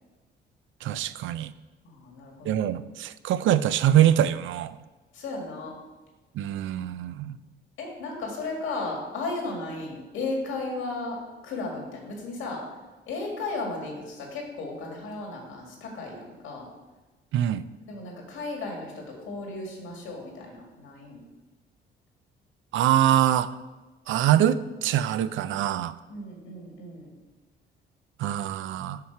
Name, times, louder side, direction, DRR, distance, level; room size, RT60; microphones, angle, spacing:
voice 1, 0.8-1.5 2.4-4.8 6.4-7.4 17.3-17.6 22.7-23.5 24.1-25.9 28.2-29.0, right 11 dB, 75° right, 14 dB, 0.4 m, -24 dB
voice 2, 1.8-2.8 5.1-5.7 7.8-11.2 11.4-12.6 13.1-16.7 17.9-21.2 26.1-27.1, left 3 dB, 85° left, 0 dB, 2.0 m, -35 dB
5.8 x 5.8 x 4.5 m, 1.2 s
cardioid pair, 90°, 20 cm